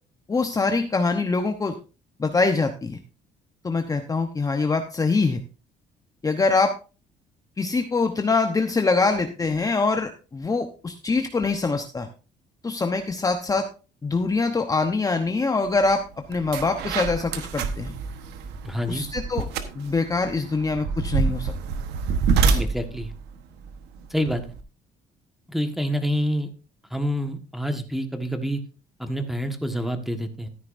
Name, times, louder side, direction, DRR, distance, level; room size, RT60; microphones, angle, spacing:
voice 1, 0.3-1.7 2.2-3.0 3.6-5.4 6.2-6.7 7.6-12.1 12.6-13.7 14.0-16.0 16.3-17.9 18.9-19.5 19.7-21.5 22.4-22.6, left 3 dB, 20° left, 6 dB, 0.9 m, -24 dB
sound 1, 15.8-15.9 16.3-24.6, right 5 dB, 90° right, 1.2 m, -27 dB
voice 2, 18.6-19.0 22.6-23.1 24.1-24.4 25.5-26.5 26.9-28.6 29.0-30.5, equal, ahead, 7 dB, 1.5 m, -27 dB
14.0 x 9.6 x 2.6 m, 0.33 s
cardioid pair, 110°, 17 cm